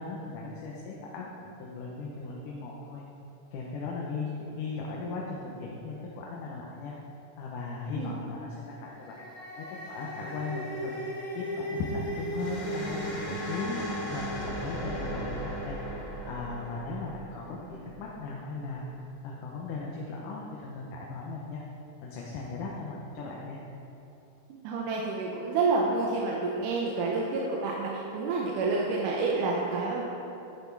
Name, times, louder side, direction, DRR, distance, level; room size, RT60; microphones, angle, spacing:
voice 1, 0.0-3.0 3.5-6.9 7.4-9.2 9.6-10.9 11.4-18.8 19.2-21.6 22.0-23.6, left 3 dB, 80° left, -3 dB, 2.5 m, -37 dB
sound 1, 8.8-18.1, equal, 35° left, 3.2 m, -36 dB
voice 2, 24.6-30.0, right 3 dB, 80° right, -2 dB, 2.4 m, -28 dB
10.0 x 9.6 x 4.6 m, 2.9 s
omnidirectional pair, 3.7 m